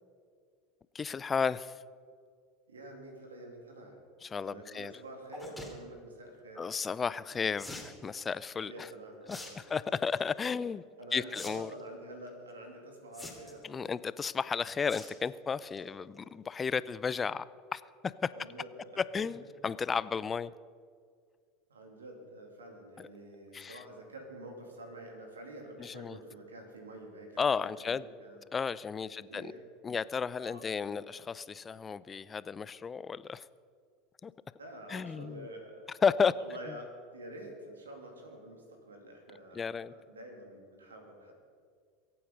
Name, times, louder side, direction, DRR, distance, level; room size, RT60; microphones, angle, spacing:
voice 1, 0.9-1.8 4.2-4.9 6.6-8.9 9.3-10.8 11.1-11.7 13.6-17.4 17.7-18.3 19.1-20.5 23.0-23.1 23.5-23.8 25.8-26.2 27.4-28.0 28.5-29.5 29.8-33.5 34.2-34.3 34.9-35.5 36.0-36.3 36.7-36.8 39.5-39.9, left 6 dB, 25° left, 18 dB, 0.5 m, -33 dB
voice 2, 2.7-4.0 4.4-6.6 8.6-9.6 11.0-13.9 18.3-19.0 21.7-28.4 29.1-29.6 30.4-31.0 34.6-35.9 36.3-41.3, right 1 dB, 90° right, 3 dB, 2.7 m, -48 dB
sound 1, 5.3-5.7 7.6-7.9 9.3-9.5 9.9-10.2 11.3-11.5 11.8-11.9 13.1-13.6 14.9-15.1 15.5-15.8 16.2-16.3 16.4-16.5, left 2 dB, 5° left, 3.0 m, -44 dB
23.0 x 8.7 x 5.3 m, 2.1 s
hypercardioid pair, 80°, 0 cm